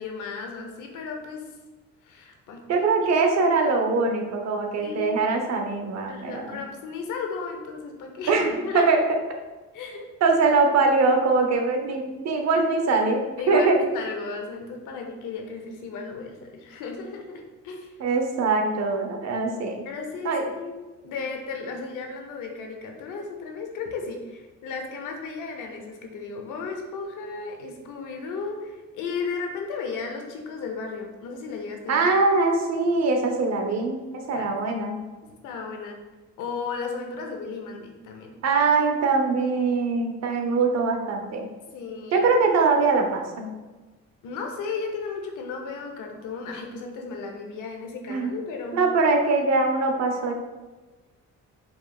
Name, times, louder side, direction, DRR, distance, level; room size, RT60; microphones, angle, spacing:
voice 1, 0.0-1.5 2.0-3.3 4.8-5.2 6.1-9.0 9.7-10.1 13.4-17.9 19.8-20.8 21.0-32.1 34.4-34.5 35.2-36.0 36.4-38.4 41.7-42.3 44.2-48.8, left 4 dB, 90° left, 3 dB, 0.7 m, -35 dB
voice 2, 2.7-6.6 8.3-9.0 10.2-13.8 18.0-19.8 20.2-20.5 31.9-35.0 38.4-41.5 42.1-43.5 48.1-48.3 48.7-50.3, right 3 dB, 60° right, 3 dB, 0.7 m, -22 dB
4.9 x 3.1 x 2.3 m, 1.2 s
cardioid pair, 90°, 30 cm